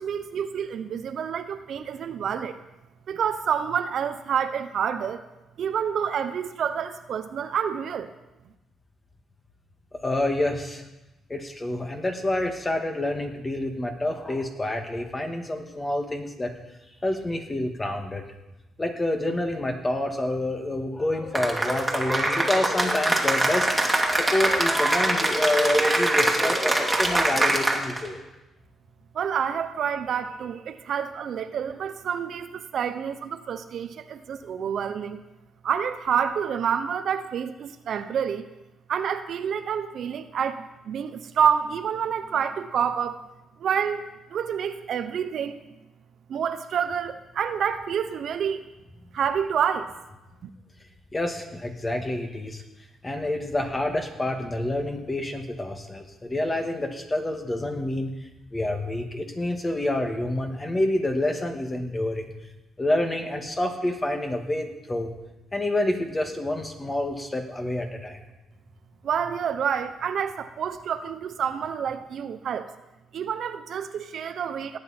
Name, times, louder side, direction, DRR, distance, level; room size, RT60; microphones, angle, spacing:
voice 1, 0.0-2.6 3.1-5.2 5.6-8.1 29.1-35.2 35.6-38.4 38.9-43.2 43.6-44.0 44.3-45.6 46.3-48.6 49.1-49.9 69.0-72.7 73.1-74.8, right 8 dB, 65° right, 10 dB, 0.7 m, -28 dB
voice 2, 10.0-10.8 11.3-16.5 17.0-18.2 18.8-23.7 24.1-28.2 51.1-52.6 53.0-58.1 58.5-62.3 62.8-65.1 65.5-68.2, left 1 dB, 20° left, 4 dB, 2.0 m, -28 dB
Cheering / Applause, 21.4-28.1, right 1 dB, 10° right, 2.3 m, -23 dB
17.5 x 9.6 x 4.4 m, 0.99 s
cardioid pair, 90°, 0 cm